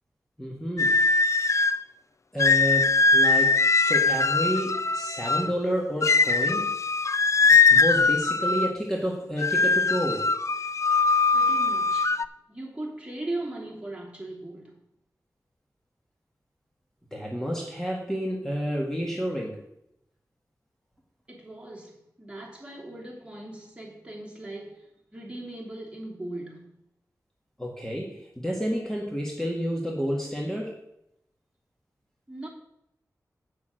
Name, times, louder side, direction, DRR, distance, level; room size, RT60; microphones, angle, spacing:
voice 1, 0.4-1.0 2.3-6.7 7.7-10.3 17.1-19.6 27.6-30.8, equal, 5° left, 1.8 m, -30 dB
sound 1, 0.8-1.8 2.4-5.5 6.0-8.8 9.4-12.2, left 4 dB, 50° left, 0.4 m, -21 dB
voice 2, 11.3-12.2 12.5-14.8 21.3-26.8 32.3-32.5, right 2 dB, 15° right, 2.9 m, -39 dB
8.5 x 6.8 x 6.4 m
wide cardioid pair, 70°, 7 cm